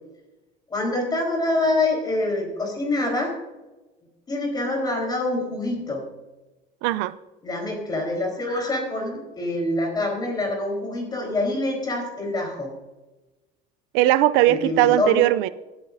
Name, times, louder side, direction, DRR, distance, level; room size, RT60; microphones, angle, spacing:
voice 1, 0.7-3.3 4.3-6.0 7.4-12.7 14.5-15.2, left 2 dB, 20° left, 1 dB, 4.2 m, -25 dB
voice 2, 6.8-7.2 13.9-15.5, right 15 dB, 90° right, 17 dB, 0.5 m, -19 dB
19.0 x 9.1 x 2.7 m, 1.1 s
cardioid pair, 135°, 18 cm